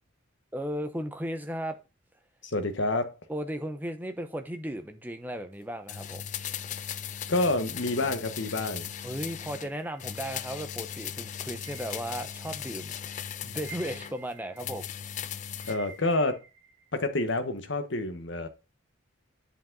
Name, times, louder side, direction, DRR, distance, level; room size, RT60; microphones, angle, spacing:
voice 1, 0.5-1.8 3.3-6.2 9.0-14.9, equal, 10° right, 0.9 m, -36 dB
voice 2, 2.4-3.1 7.3-8.9 15.7-16.4 16.9-18.5, left 2 dB, 65° left, 1.3 m, -28 dB
sound 1, 5.9-9.7 10.0-14.1 14.6-15.8 16.1-16.2, left 9 dB, 35° left, 0.4 m, -38 dB
sound 2, 9.6-10.9 11.6-12.9 13.2-16.9, right 5 dB, 35° right, 3.5 m, -51 dB
10.0 x 5.3 x 3.9 m
head